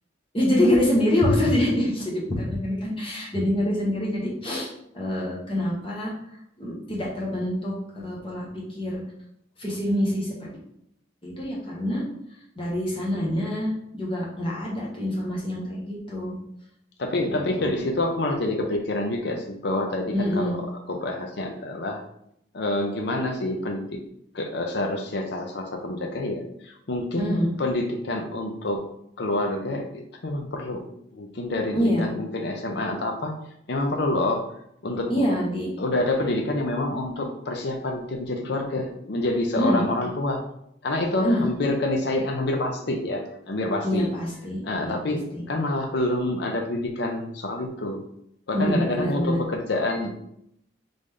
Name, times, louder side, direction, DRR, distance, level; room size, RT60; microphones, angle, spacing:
voice 1, 0.3-6.1 6.6-9.0 9.6-10.5 11.2-12.0 12.5-16.3 17.3-17.8 20.1-20.6 27.2-27.5 31.7-32.1 35.1-35.7 39.5-39.9 41.2-41.4 43.8-45.4 48.5-49.4, left 1 dB, 30° left, -4 dB, 1.4 m, -26 dB
voice 2, 17.0-20.6 20.9-22.0 22.5-23.8 24.3-28.8 29.2-30.8 31.1-33.3 33.7-34.4 34.8-35.1 35.8-40.4 40.8-44.1 44.6-45.2 45.5-48.0 48.5-50.1, left 2 dB, 60° left, 3 dB, 0.6 m, -27 dB
3.8 x 3.4 x 3.7 m, 0.74 s
head